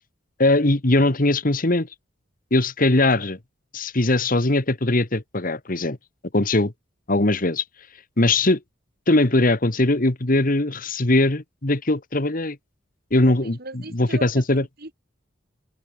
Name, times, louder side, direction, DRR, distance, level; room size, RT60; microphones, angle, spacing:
voice 1, 0.4-1.9 2.5-3.4 3.7-6.0 6.3-6.7 7.1-7.6 8.2-8.6 9.1-12.6 13.1-14.7, left 2 dB, 45° left, 1.6 m, -20 dB
voice 2, 13.3-14.9, right 2 dB, 55° right, 4.0 m, -39 dB
open air
head